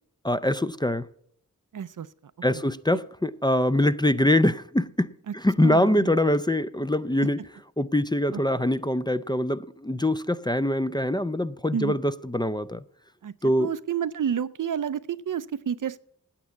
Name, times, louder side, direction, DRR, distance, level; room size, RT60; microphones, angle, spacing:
voice 1, 0.2-1.1 2.4-7.4 7.8-12.8 13.4-13.7, left 1 dB, 15° left, 0.4 m, -24 dB
voice 2, 1.7-2.1 5.3-5.4 5.6-6.2 8.3-8.4 11.7-12.0 13.2-13.3 13.6-16.0, right 8 dB, 65° right, 0.5 m, -29 dB
8.7 x 8.3 x 8.0 m
wide cardioid pair, 45°, 34 cm